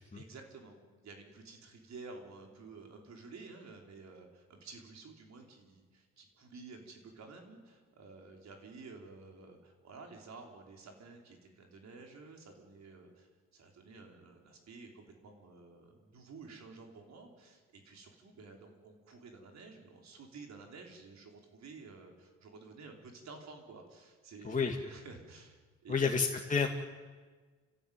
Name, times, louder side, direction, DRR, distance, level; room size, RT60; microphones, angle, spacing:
voice 1, 0.1-26.1, right 4 dB, 60° right, 2 dB, 5.3 m, -52 dB
voice 2, 24.4-24.8 25.9-26.7, left 5 dB, 25° left, 1 dB, 2.2 m, -30 dB
29.5 x 16.0 x 9.2 m, 1.4 s
cardioid pair, 90°, 30 cm